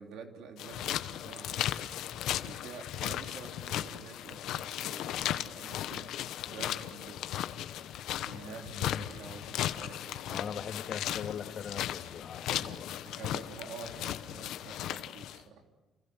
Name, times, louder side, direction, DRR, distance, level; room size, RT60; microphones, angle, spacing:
voice 1, 0.0-1.7 2.4-7.2 7.5-7.9 8.2-10.5 12.5-15.6, right 5 dB, 85° right, 4 dB, 3.6 m, -49 dB
sound 1, 0.6-15.4, left 12 dB, 85° left, 1.1 m, -36 dB
voice 2, 8.7-9.1 10.3-12.9, left 7 dB, 60° left, 5 dB, 2.5 m, -40 dB
29.0 x 28.5 x 6.3 m, 1.2 s
cardioid pair, 90°, 0 cm